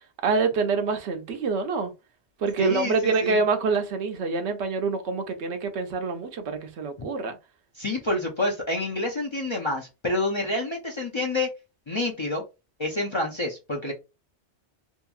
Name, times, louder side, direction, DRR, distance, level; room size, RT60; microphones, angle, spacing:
voice 1, 0.2-1.9 2.4-7.3, right 4 dB, 90° right, 0.9 m, -26 dB
voice 2, 2.6-3.4 7.0-7.1 7.8-11.5 11.9-12.4 12.8-13.9, left 2 dB, 45° left, 0.4 m, -28 dB
2.8 x 2.6 x 2.3 m
omnidirectional pair, 1.1 m